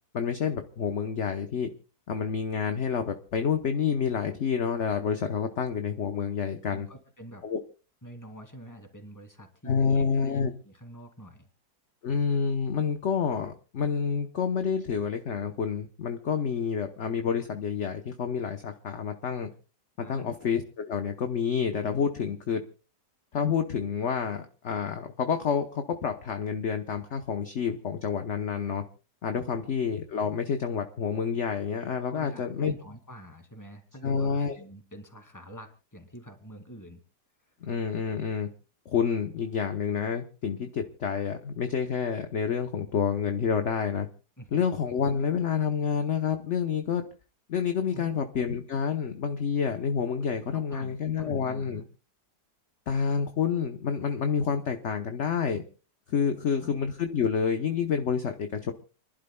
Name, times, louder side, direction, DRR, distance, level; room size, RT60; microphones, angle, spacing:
voice 1, 0.1-1.7 2.1-6.9 7.4-7.6 9.7-10.5 12.0-19.5 20.0-22.6 23.3-28.8 29.2-32.7 34.0-34.5 37.6-38.5 38.9-44.1 44.5-47.0 47.5-51.8 52.9-55.6 56.1-58.7, left 6 dB, 50° left, 6 dB, 1.1 m, -28 dB
voice 2, 6.6-7.5 8.0-11.5 20.0-20.4 29.4-29.8 32.1-37.0 37.5-37.6 44.4-44.7 47.9-48.2 50.5-51.8 56.3-56.8, equal, 10° left, 4 dB, 2.3 m, -47 dB
30.0 x 11.5 x 2.2 m, 0.33 s
omnidirectional pair, 1.9 m